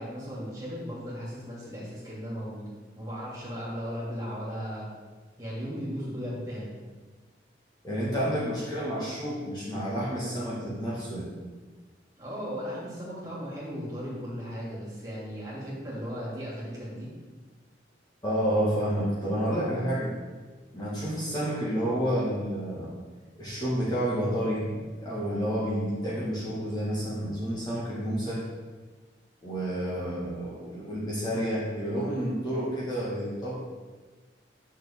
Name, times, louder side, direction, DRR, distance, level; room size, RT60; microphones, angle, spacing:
voice 1, 0.0-2.7 2.9-4.9 5.4-6.7 12.2-17.1, equal, 20° right, -7 dB, 2.6 m, -36 dB
voice 2, 7.8-11.3 18.2-20.1 20.7-22.9 23.3-28.4 29.4-33.5, equal, 25° left, -7 dB, 1.8 m, -30 dB
9.5 x 6.4 x 3.6 m, 1.3 s
head